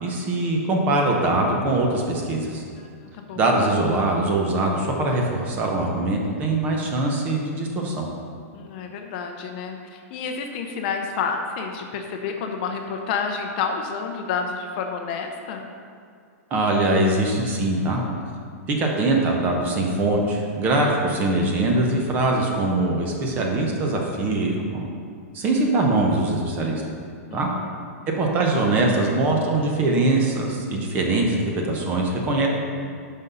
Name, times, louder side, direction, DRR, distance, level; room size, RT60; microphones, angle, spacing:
voice 1, 0.0-2.6 3.3-8.1 16.5-18.0 18.7-24.8 25.3-26.8 27.3-27.5 28.2-32.5, right 2 dB, 20° right, 0 dB, 0.8 m, -22 dB
voice 2, 2.8-3.4 8.5-15.7 27.3-27.8, left 5 dB, 35° left, 3 dB, 0.6 m, -30 dB
6.0 x 5.3 x 5.5 m, 2.2 s
supercardioid pair, 170°, 8 cm